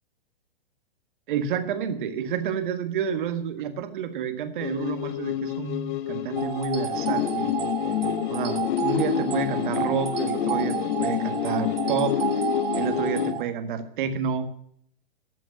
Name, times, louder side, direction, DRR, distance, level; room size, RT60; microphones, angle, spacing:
voice 1, 1.3-7.5 8.3-12.2 12.7-14.5, right 7 dB, 55° right, 9 dB, 1.7 m, -29 dB
sound 1, 4.6-13.3, left 11 dB, 55° left, 1.0 m, -28 dB
sound 2, 6.3-13.4, right 8 dB, 70° right, 1.6 m, -31 dB
13.5 x 5.8 x 8.4 m, 0.67 s
hypercardioid pair, 130°, 30 cm